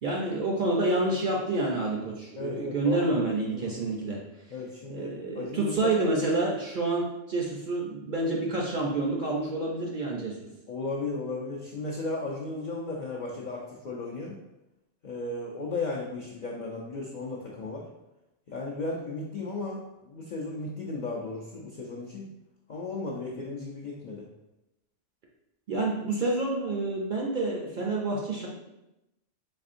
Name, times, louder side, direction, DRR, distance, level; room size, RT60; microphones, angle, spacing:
voice 1, 0.0-4.2 4.9-10.3 25.7-28.5, right 2 dB, 55° right, -2 dB, 0.6 m, -28 dB
voice 2, 2.4-3.1 3.5-3.7 4.5-6.0 10.7-14.4 15.0-17.9 18.5-22.3 22.7-24.3, left 3 dB, 55° left, -4 dB, 0.5 m, -35 dB
4.2 x 3.3 x 2.5 m, 0.92 s
omnidirectional pair, 1.2 m